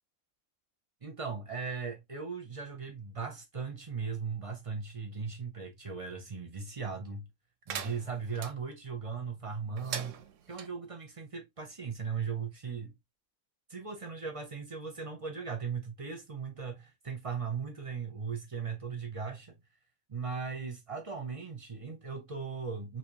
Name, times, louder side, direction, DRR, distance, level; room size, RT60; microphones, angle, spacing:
voice 1, 1.0-7.2 7.7-10.2 10.5-12.9 13.7-19.6 20.1-23.0, right 5 dB, 35° right, 0.6 m, -38 dB
sound 1, 7.7-8.5 9.8-10.7, right 8 dB, 70° right, 0.8 m, -40 dB
3.4 x 2.8 x 2.8 m
omnidirectional pair, 1.5 m